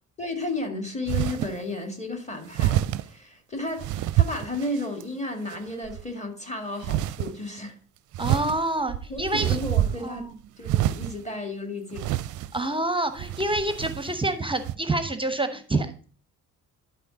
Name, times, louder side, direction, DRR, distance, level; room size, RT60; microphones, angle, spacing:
voice 1, 0.2-7.8 9.1-10.3 10.6-12.2, left 2 dB, 15° left, 1.9 m, -33 dB
sound 1, 1.1-1.6 2.5-3.1 3.8-5.0 5.5-6.0 6.8-7.3 8.1-10.2 10.6-11.2 11.9-12.7 13.2-14.2 14.6-14.7, right 13 dB, 45° right, 0.5 m, -27 dB
voice 2, 8.2-9.6 10.0-10.3 12.5-16.0, right 2 dB, 10° right, 0.8 m, -27 dB
11.5 x 4.9 x 3.8 m
figure-of-eight pair, 40°, 43 cm